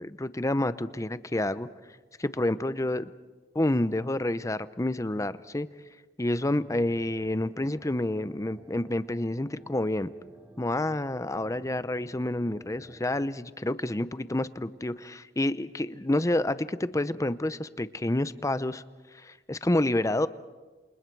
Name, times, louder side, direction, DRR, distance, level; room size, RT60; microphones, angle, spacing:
voice 1, 0.0-1.7 2.2-3.1 3.5-5.7 6.2-10.1 10.6-18.8 19.2-20.3, left 1 dB, 20° left, 14 dB, 0.7 m, -28 dB
sound 1, 6.4-13.3, right 1 dB, 10° right, 3.4 m, -53 dB
28.0 x 27.5 x 4.7 m, 1.3 s
head